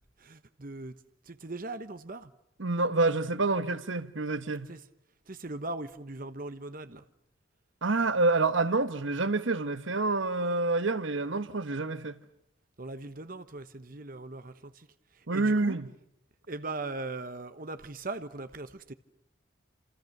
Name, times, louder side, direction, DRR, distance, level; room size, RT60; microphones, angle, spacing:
voice 1, 0.2-0.9 1.3-2.3 4.7-4.8 5.3-7.0 12.8-14.9 15.3-15.8 16.5-18.9, right 2 dB, 45° right, 1.1 m, -39 dB
voice 2, 2.6-4.7 7.8-12.2 15.3-15.9, right 3 dB, 70° right, 1.1 m, -27 dB
28.0 x 28.0 x 6.7 m
head